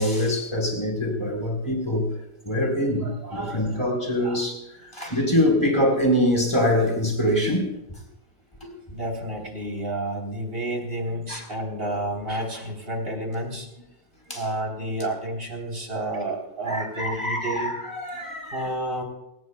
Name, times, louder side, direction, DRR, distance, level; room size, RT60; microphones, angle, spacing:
voice 1, 0.0-2.1 2.4-8.0 8.6-8.7 11.3-11.4 14.3-14.4 16.7-18.7, left 1 dB, 25° left, 4.4 m, -24 dB
voice 2, 3.0-3.8 4.2-4.4 8.9-13.7 14.3-17.7 18.5-19.0, right 1 dB, 55° right, 4.0 m, -30 dB
28.5 x 17.0 x 2.3 m
omnidirectional pair, 1.2 m